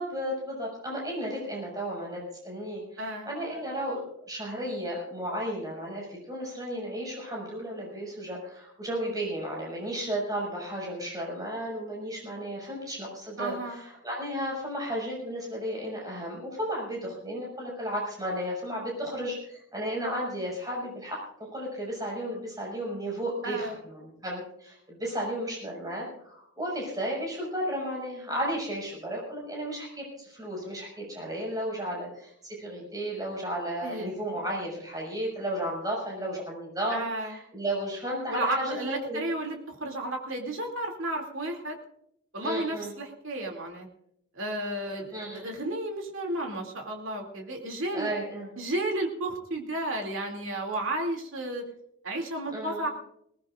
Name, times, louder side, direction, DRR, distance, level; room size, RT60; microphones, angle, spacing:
voice 1, 0.0-39.2 42.4-42.9 45.1-45.5 47.9-48.5 52.5-52.9, equal, 15° right, -3 dB, 6.1 m, -34 dB
voice 2, 3.0-3.3 13.4-13.8 23.4-23.8 33.8-34.1 36.9-37.4 38.3-41.8 42.3-43.9 44.3-48.1 48.6-51.6 52.0-52.9, right 1 dB, 60° right, 1 dB, 2.7 m, -32 dB
20.5 x 18.5 x 2.5 m, 0.73 s
head